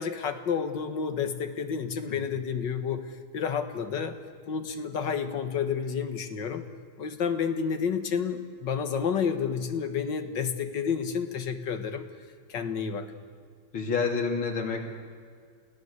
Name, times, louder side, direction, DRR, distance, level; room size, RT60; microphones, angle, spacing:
voice 1, 0.0-4.2 4.5-6.6 7.0-12.1 12.5-13.1, left 6 dB, 60° left, 8 dB, 2.2 m, -30 dB
voice 2, 13.7-14.9, left 5 dB, 85° left, 1 dB, 3.5 m, -28 dB
28.5 x 17.5 x 8.2 m, 2.1 s
omnidirectional pair, 2.3 m